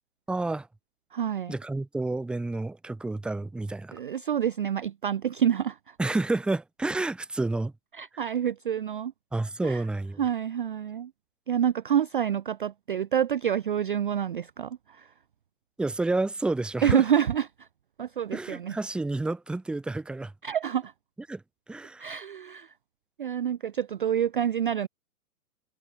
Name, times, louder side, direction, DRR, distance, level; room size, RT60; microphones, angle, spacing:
voice 1, 0.3-0.7 1.5-3.9 6.0-7.7 9.3-10.2 15.8-17.0 18.3-20.3 21.3-21.4 21.7-22.0, right 2 dB, ahead, 0.9 m, -29 dB
voice 2, 1.1-1.5 3.9-6.0 7.9-9.1 9.6-9.8 10.2-11.1 11.5-15.1 16.8-17.7 18.0-18.8 20.4-20.9 22.0-22.7 23.2-24.9, right 9 dB, 35° right, 0.4 m, -27 dB
figure-of-eight pair, 120°, 46 cm